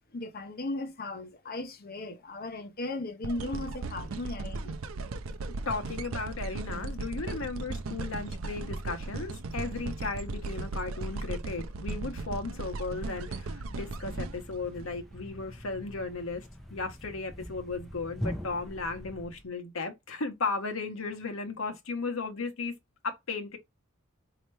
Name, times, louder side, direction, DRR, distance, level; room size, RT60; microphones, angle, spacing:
voice 1, 0.0-4.8, left 2 dB, 45° left, 0.8 m, -37 dB
sound 1, 3.2-15.4 16.0-16.1, right 3 dB, 70° right, 0.5 m, -37 dB
voice 2, 5.7-16.4 16.7-22.7 23.0-23.6, left 3 dB, 65° left, 1.0 m, -35 dB
Thump thud, 13.3-19.5, equal, ahead, 0.7 m, -42 dB
4.3 x 2.8 x 3.2 m
head